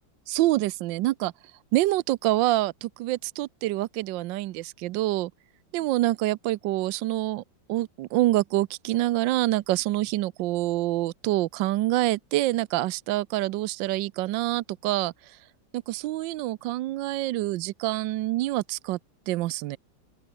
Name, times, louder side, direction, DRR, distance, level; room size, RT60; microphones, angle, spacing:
voice 1, 0.3-1.3 1.7-5.3 5.7-7.4 7.7-15.4 15.7-19.0 19.3-19.8, right 16 dB, 80° right, 1.3 m, -26 dB
open air
omnidirectional pair, 2.0 m